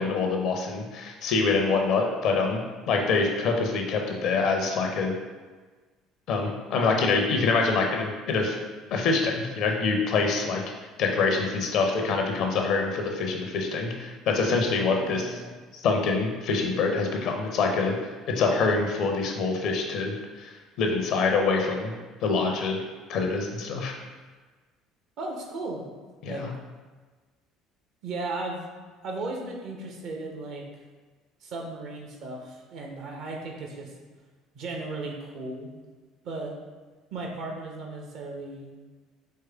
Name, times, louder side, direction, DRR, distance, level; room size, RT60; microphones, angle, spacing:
voice 1, 0.0-2.6 2.9-5.1 6.3-8.6 8.9-10.6 11.0-15.3 15.8-18.0 18.4-20.5 20.8-21.9 22.2-22.8 23.1-23.9 26.2-26.5, left 4 dB, 50° left, 2 dB, 0.6 m, -25 dB
voice 2, 14.9-15.5 25.2-25.8 26.2-26.4 28.0-28.7 29.0-30.6 31.4-33.9 34.5-35.7 36.2-36.5 37.1-38.7, right 2 dB, 50° right, 0 dB, 0.8 m, -36 dB
4.6 x 3.2 x 3.4 m, 1.4 s
figure-of-eight pair, 55°, 0 cm